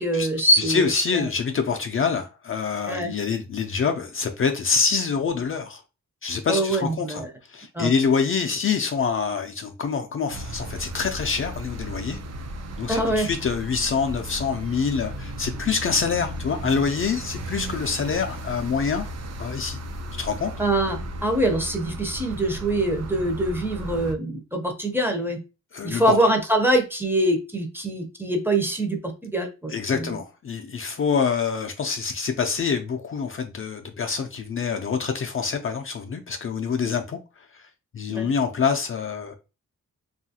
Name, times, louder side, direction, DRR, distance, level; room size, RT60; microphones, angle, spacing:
voice 1, 0.0-1.3 2.9-3.1 6.5-7.3 7.7-7.9 12.9-13.3 20.6-25.4 25.8-30.2 38.1-38.3, right 1 dB, 5° right, 0.6 m, -24 dB
voice 2, 0.6-5.8 6.2-7.2 7.5-12.2 12.8-19.1 19.4-19.8 20.2-20.5 25.7-26.2 29.7-37.2 37.5-37.6 37.9-39.4, left 5 dB, 45° left, 0.4 m, -26 dB
sound 1, 10.3-24.1, right 1 dB, 55° right, 0.5 m, -35 dB
2.7 x 2.4 x 2.7 m
cardioid pair, 90°, 31 cm